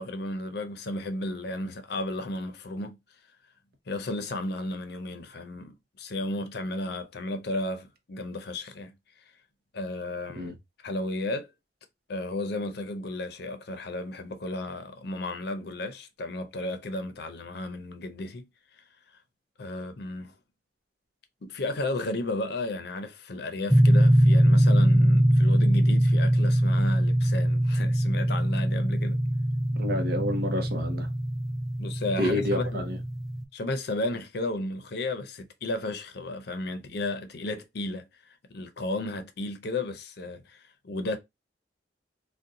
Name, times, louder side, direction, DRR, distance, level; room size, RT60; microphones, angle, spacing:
voice 1, 0.0-3.0 3.9-8.9 9.7-10.5 10.8-11.5 12.1-18.8 19.6-20.4 21.4-29.2 31.8-32.8 33.5-41.2, left 2 dB, 60° left, 0.6 m, -33 dB
sound 1, 23.7-33.4, equal, ahead, 0.3 m, -22 dB
voice 2, 29.8-31.1 32.2-33.0, left 1 dB, 60° right, 0.8 m, -28 dB
2.6 x 2.2 x 3.7 m
head